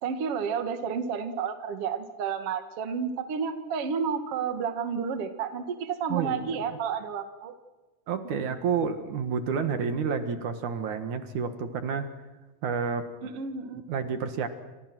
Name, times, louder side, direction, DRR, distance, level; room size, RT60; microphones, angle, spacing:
voice 1, 0.0-7.6 8.2-8.5 13.2-13.8, right 6 dB, 50° right, 8 dB, 2.5 m, -31 dB
voice 2, 6.1-6.5 8.1-12.1 12.6-13.1 13.9-14.5, right 6 dB, 65° right, 8 dB, 3.0 m, -29 dB
30.0 x 26.5 x 6.2 m, 1.2 s
omnidirectional pair, 3.9 m